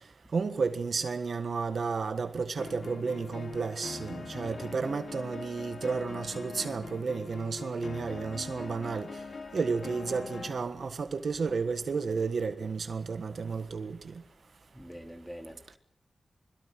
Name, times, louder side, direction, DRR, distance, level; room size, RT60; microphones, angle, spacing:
voice 1, 0.3-9.2 9.5-14.1, right 5 dB, 70° right, 1.5 m, -32 dB
sound 1, 2.6-10.6, left 4 dB, 65° left, 2.3 m, -42 dB
voice 2, 4.4-4.7 14.7-15.8, equal, ahead, 2.8 m, -45 dB
22.0 x 21.5 x 6.2 m
cardioid pair, 50°, 0 cm